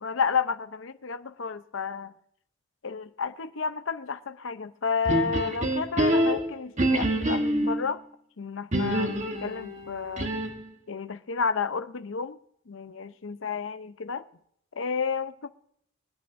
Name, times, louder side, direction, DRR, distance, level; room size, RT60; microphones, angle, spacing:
voice 1, 0.0-2.1 2.8-8.0 8.4-10.3 10.9-12.4 12.7-14.2 14.8-15.5, left 5 dB, 60° left, 0.7 m, -31 dB
sound 1, 5.1-7.8 8.7-10.7, right 1 dB, 35° right, 1.2 m, -26 dB
27.0 x 9.4 x 2.6 m
head